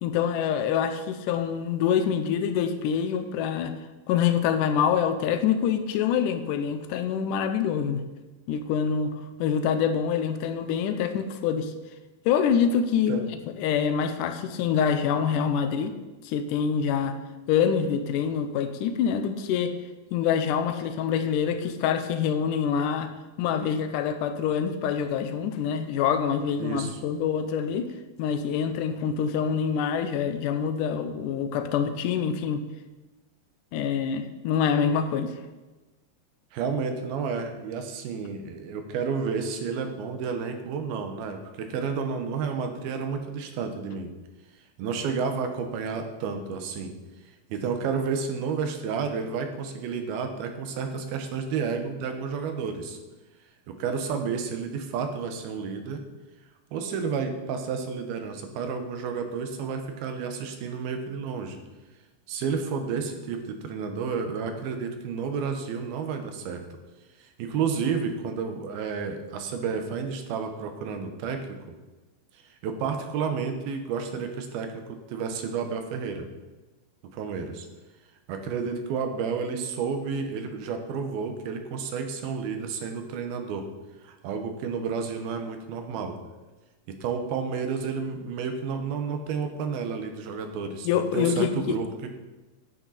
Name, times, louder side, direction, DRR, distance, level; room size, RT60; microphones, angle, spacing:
voice 1, 0.0-3.8 4.1-8.0 8.5-11.7 12.3-13.2 13.6-15.9 16.2-17.2 17.5-19.7 20.1-23.1 23.4-27.9 28.2-32.6 33.7-35.3 90.9-91.8, left 7 dB, 80° left, 8 dB, 2.0 m, -25 dB
voice 2, 26.6-27.0 36.5-44.1 44.8-46.9 47.5-53.0 53.7-56.0 56.7-61.6 62.3-66.6 67.2-71.5 72.5-76.3 77.1-77.7 78.3-83.7 84.0-86.2 86.9-91.9, right 5 dB, 85° right, 5 dB, 3.0 m, -31 dB
10.5 x 8.8 x 4.2 m, 1.1 s
omnidirectional pair, 4.2 m